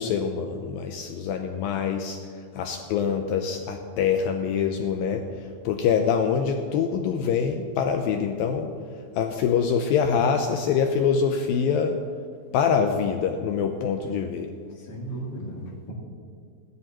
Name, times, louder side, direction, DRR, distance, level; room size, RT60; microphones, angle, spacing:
voice 1, 0.0-2.2 2.6-5.2 5.7-8.7 9.2-12.0 12.5-14.5, left 6 dB, 85° left, 5 dB, 2.1 m, -24 dB
voice 2, 14.7-15.9, right 2 dB, 55° left, -10 dB, 3.8 m, -36 dB
20.5 x 12.5 x 3.0 m, 2.1 s
omnidirectional pair, 4.8 m